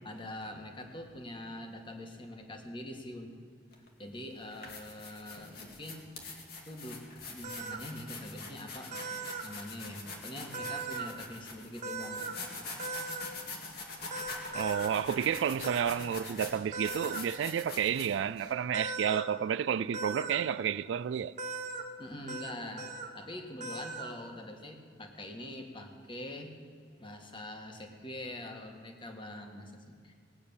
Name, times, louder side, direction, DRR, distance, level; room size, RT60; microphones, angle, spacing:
voice 1, 0.0-3.4 3.7-6.1 6.5-7.0 7.3-9.0 9.4-12.9 22.0-22.9 23.1-26.5 27.0-30.1, left 1 dB, 30° left, 1.6 m, -44 dB
sound 1, 3.7-3.9 4.4-18.5, left 3 dB, 60° left, 2.2 m, -44 dB
sound 2, 7.4-7.8 8.9-9.4 10.5-11.1 11.8-12.3 12.8-13.2 14.1-14.9 15.6-15.8 16.7-17.2 18.7-19.2 19.9-20.4 21.4-21.8 22.3-22.5 22.8-23.1 23.6-24.1, right 3 dB, 45° right, 1.3 m, -38 dB
voice 2, 14.5-21.3, right 8 dB, 80° right, 0.3 m, -31 dB
18.5 x 8.7 x 7.0 m
head